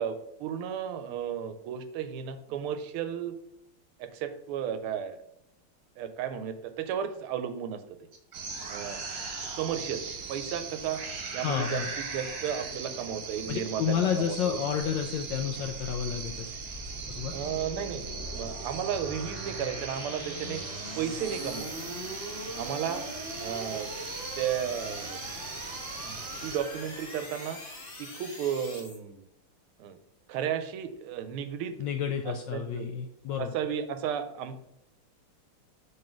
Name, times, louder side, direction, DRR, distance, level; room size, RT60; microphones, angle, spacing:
voice 1, 0.0-3.3 4.0-5.2 6.0-7.8 8.7-9.0 9.6-10.0 10.3-11.0 11.3-14.6 17.3-20.6 21.0-21.9 22.5-23.1 23.4-23.9 24.4-25.2 26.0-27.6 28.0-29.3 29.8-30.0 30.3-31.8 32.2-32.9 33.4-34.6, right 8 dB, 80° right, 10 dB, 1.5 m, -34 dB
sound 1, 8.1-10.6 10.9-12.8, right 3 dB, 45° right, 1.4 m, -40 dB
sound 2, 8.3-26.6, right 5 dB, 60° right, 0.9 m, -40 dB
voice 2, 11.4-11.9 13.5-16.5 17.1-17.3 31.8-33.5, left 8 dB, 80° left, 5 dB, 1.0 m, -30 dB
sound 3, 15.7-29.0, equal, 30° left, 1.2 m, -42 dB
5.5 x 3.8 x 5.8 m, 0.82 s
omnidirectional pair, 2.4 m